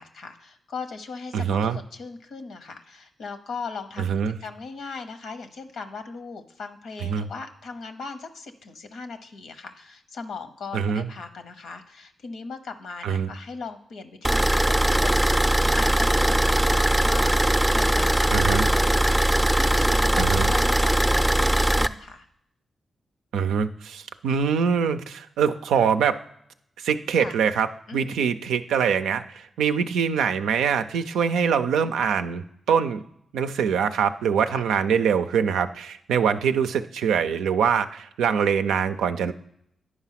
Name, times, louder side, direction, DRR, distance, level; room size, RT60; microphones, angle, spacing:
voice 1, 0.0-1.6 1.9-4.1 4.4-15.3 15.6-22.2 27.1-27.3 27.9-28.1 34.5-34.6, left 4 dB, 80° left, 8 dB, 0.9 m, -38 dB
voice 2, 1.3-1.8 4.0-4.4 7.0-7.3 10.7-11.1 13.0-13.3 18.3-18.7 20.2-20.5 23.3-26.1 26.8-27.7 27.9-33.0 33.3-39.3, right 7 dB, 85° right, 9 dB, 0.4 m, -24 dB
sound 1, 14.2-21.9, right 1 dB, 10° right, 0.5 m, -20 dB
9.7 x 4.8 x 5.7 m, 0.74 s
supercardioid pair, 45°, 0 cm